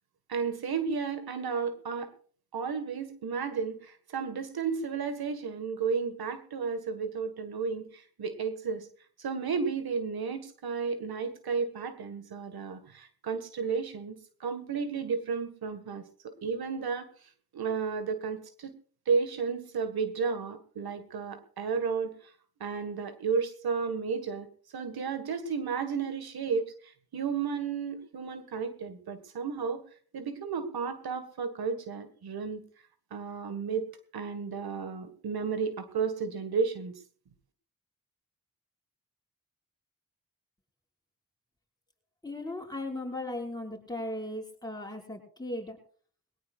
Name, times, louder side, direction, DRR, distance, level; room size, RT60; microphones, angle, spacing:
voice 1, 0.3-2.1 2.5-8.9 9.2-17.1 17.5-18.7 19.1-22.3 22.6-24.5 24.7-29.8 30.1-32.6 33.1-36.9, right 5 dB, 85° right, 10 dB, 1.7 m, -33 dB
voice 2, 42.2-45.8, left 1 dB, 10° left, 0 dB, 5.4 m, -37 dB
21.0 x 17.5 x 2.4 m, 0.42 s
cardioid pair, 60°, 36 cm